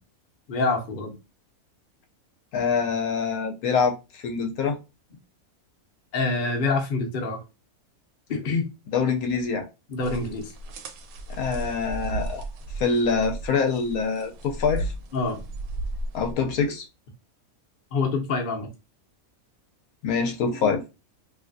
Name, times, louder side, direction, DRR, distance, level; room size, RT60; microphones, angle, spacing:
voice 1, 0.5-1.1 6.1-7.4 8.3-8.7 9.9-10.5 15.1-15.4 17.9-18.7, left 3 dB, 45° left, 0.7 m, -26 dB
voice 2, 2.5-4.8 8.9-9.7 11.3-12.4 12.8-14.9 16.1-16.8 20.0-20.8, left 5 dB, 75° left, 1.0 m, -25 dB
sound 1, 10.0-16.3, right 2 dB, 75° right, 1.0 m, -35 dB
3.2 x 2.6 x 2.5 m
omnidirectional pair, 1.5 m